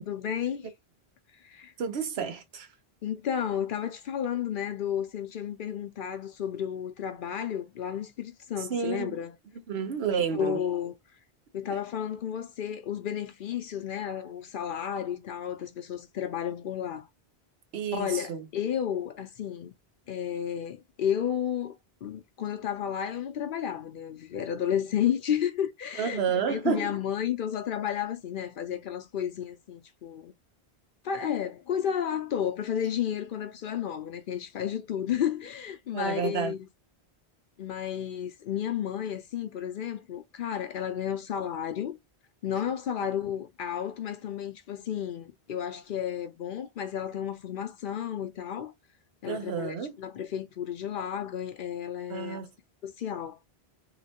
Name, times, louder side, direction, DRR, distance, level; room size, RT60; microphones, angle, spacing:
voice 1, 0.1-0.7 1.3-1.7 3.0-9.3 10.3-10.9 11.5-17.1 17.9-19.7 20.1-30.3 31.0-36.7 37.6-42.0 42.4-48.7 49.2-52.4 52.8-53.4, left 9 dB, 60° left, 0.7 m, -32 dB
voice 2, 1.8-2.7 8.7-9.2 9.7-10.6 17.7-18.4 26.0-26.9 35.9-36.5 49.2-49.9 52.1-52.5, right 7 dB, 80° right, 1.0 m, -30 dB
3.1 x 2.9 x 2.8 m
omnidirectional pair, 1.1 m